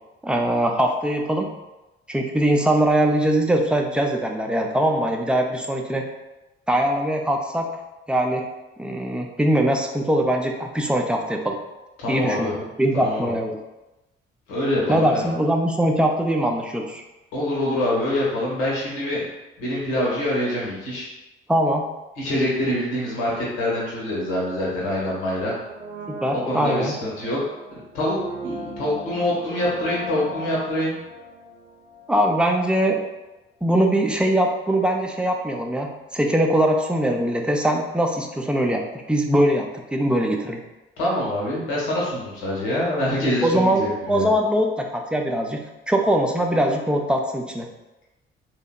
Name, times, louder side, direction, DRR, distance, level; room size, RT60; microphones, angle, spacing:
voice 1, 0.2-1.5 2.1-6.1 6.7-7.7 8.1-8.5 8.8-11.6 12.1-13.6 14.9-17.0 21.5-21.9 26.1-26.9 32.1-33.0 33.6-40.6 43.4-45.6 45.9-47.7, right 1 dB, 5° right, 2 dB, 0.3 m, -22 dB
voice 2, 12.0-12.5 12.9-13.3 14.5-15.3 17.3-19.2 19.6-21.1 22.2-25.5 26.3-27.4 27.7-30.9 41.0-44.3, left 1 dB, 75° left, -5 dB, 0.8 m, -25 dB
Brass instrument, 25.6-32.5 32.7-32.8, right 1 dB, 90° right, 0.5 m, -37 dB
2.8 x 2.1 x 2.2 m, 1.0 s
hypercardioid pair, 45°, 29 cm